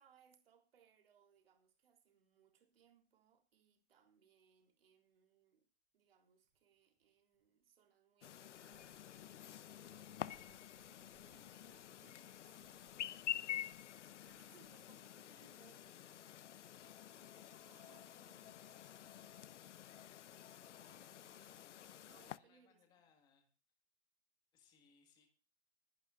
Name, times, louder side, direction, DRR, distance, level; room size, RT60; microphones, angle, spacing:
voice 1, 0.0-13.1 13.9-16.1 17.6-19.6 20.7-21.7 22.1-23.0, right 8 dB, 55° right, 3.5 m, -71 dB
sound 1, 4.2-4.3 6.4-7.6 8.4-14.8, right 4 dB, 20° right, 4.8 m, -75 dB
Chirp tweet, 8.2-22.4, left 11 dB, 85° left, 0.7 m, -49 dB
voice 2, 21.7-23.5 24.5-25.3, left 6 dB, 10° left, 1.8 m, -73 dB
21.5 x 11.0 x 2.5 m
hypercardioid pair, 170°, 35 cm